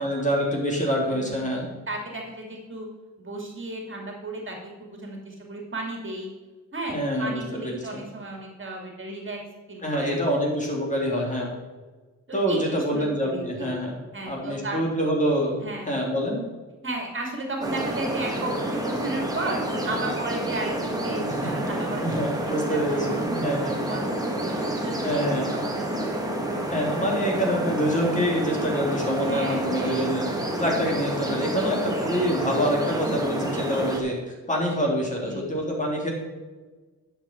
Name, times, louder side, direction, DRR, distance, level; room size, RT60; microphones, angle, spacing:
voice 1, 0.0-1.7 6.9-8.0 9.8-11.5 12.3-14.0 14.2-15.6 15.9-16.4 21.3-21.6 22.0-23.8 25.0-25.5 26.7-30.3 30.6-36.1, equal, 25° left, -2 dB, 3.3 m, -26 dB
voice 2, 1.1-1.4 1.9-2.9 3.2-6.3 6.7-9.4 9.7-10.2 11.0-11.1 12.3-13.7 14.1-14.8 15.6-16.0 16.8-22.0 22.3-22.4 22.7-25.2 25.5-26.3 26.6-26.7 29.2-30.6 31.5-31.7 35.2-35.6, right 2 dB, 40° right, 1 dB, 2.5 m, -34 dB
sound 1, 17.6-34.0, right 1 dB, 10° right, 1.9 m, -29 dB
11.0 x 6.8 x 4.6 m, 1.3 s
cardioid pair, 85°, 30 cm